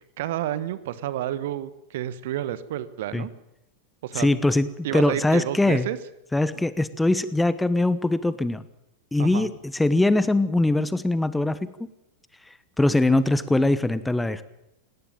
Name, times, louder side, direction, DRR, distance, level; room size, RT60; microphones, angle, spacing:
voice 1, 0.2-3.3 4.0-4.4 4.8-6.0 9.2-9.5, right 12 dB, 55° right, 16 dB, 1.2 m, -30 dB
voice 2, 4.1-5.9 6.3-8.6 9.1-11.7 12.8-14.4, left 2 dB, 5° left, 15 dB, 1.0 m, -22 dB
19.5 x 17.5 x 9.0 m, 0.86 s
figure-of-eight pair, 90°, 0 cm